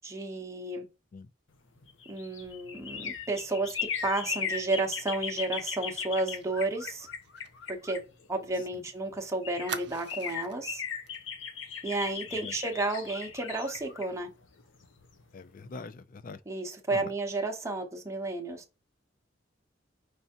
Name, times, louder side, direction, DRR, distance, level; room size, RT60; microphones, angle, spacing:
voice 1, 0.0-0.8 2.1-3.8 4.0-7.1 7.7-8.0 8.3-10.8 11.8-14.3 16.5-18.6, right 2 dB, 15° right, 0.8 m, -32 dB
sound 1, 1.8-8.6 9.1-9.2 9.4-15.2 15.6-15.7, left 6 dB, 80° left, 0.8 m, -38 dB
Fire, 5.4-8.8 9.1-9.2 9.7-10.6 11.1-11.2 11.5-11.8, right 7 dB, 60° right, 0.5 m, -44 dB
voice 2, 15.3-16.4 16.9-17.1, left 3 dB, 45° left, 0.4 m, -43 dB
5.5 x 3.3 x 2.8 m
head